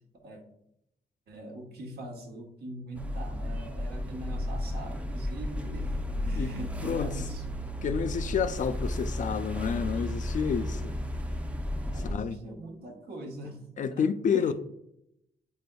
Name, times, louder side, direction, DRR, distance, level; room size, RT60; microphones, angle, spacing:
voice 1, 1.3-5.9 6.2-7.6 11.9-13.6 13.9-14.5, right 1 dB, 70° right, 1.1 m, -42 dB
sound 1, 2.9-12.1, left 1 dB, 10° right, 0.5 m, -33 dB
voice 2, 6.8-7.1 7.8-11.0 11.9-12.4 13.8-14.5, left 7 dB, 50° left, 0.4 m, -29 dB
8.5 x 5.1 x 2.3 m
wide cardioid pair, 125°, 17 cm